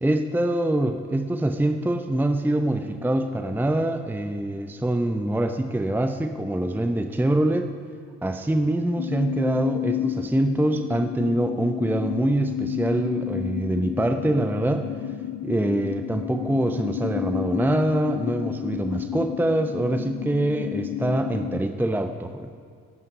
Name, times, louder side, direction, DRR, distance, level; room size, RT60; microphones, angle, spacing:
voice 1, 0.0-7.7 8.2-14.9 15.4-22.5, right 1 dB, 5° right, 7 dB, 0.8 m, -24 dB
sound 1, 9.0-21.6, left 12 dB, 45° left, 0.6 m, -31 dB
18.5 x 9.6 x 5.4 m, 2.2 s
figure-of-eight pair, 45°, 39 cm